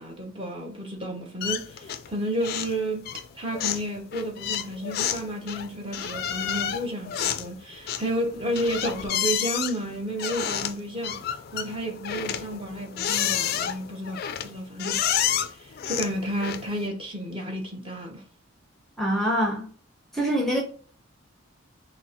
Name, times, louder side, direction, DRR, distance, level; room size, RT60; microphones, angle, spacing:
voice 1, 0.0-11.2 11.5-15.1 15.5-18.2, right 1 dB, 25° right, 0.8 m, -32 dB
sound 1, 1.4-2.1 2.4-2.8 3.1-16.9, left 9 dB, 50° left, 0.3 m, -30 dB
voice 2, 19.0-19.7 20.1-20.6, equal, ahead, 0.6 m, -24 dB
5.9 x 2.0 x 2.9 m
head